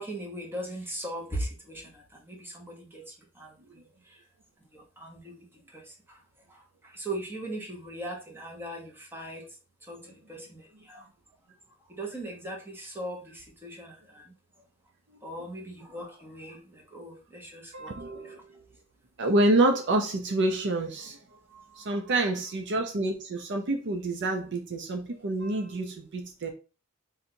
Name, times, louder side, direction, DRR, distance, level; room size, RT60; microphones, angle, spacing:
voice 1, 0.0-3.5 4.7-5.4 5.7-5.8 6.1-6.2 6.8-9.4 9.9-11.0 11.9-14.3 15.2-18.3, right 1 dB, 10° right, 1.2 m, -39 dB
voice 2, 17.7-18.6 19.2-21.2 21.5-26.5, right 2 dB, 55° right, 0.6 m, -28 dB
4.0 x 2.7 x 4.3 m
head